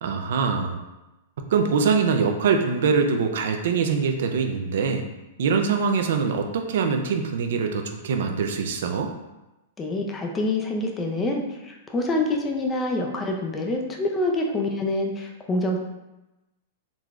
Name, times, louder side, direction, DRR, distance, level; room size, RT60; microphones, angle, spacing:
voice 1, 0.0-0.8 1.5-5.0 5.4-9.1, right 5 dB, 70° right, 5 dB, 0.4 m, -23 dB
voice 2, 9.8-15.8, left 2 dB, 15° left, 1 dB, 0.4 m, -26 dB
3.8 x 3.1 x 2.4 m, 1.0 s
hypercardioid pair, 145°, 0 cm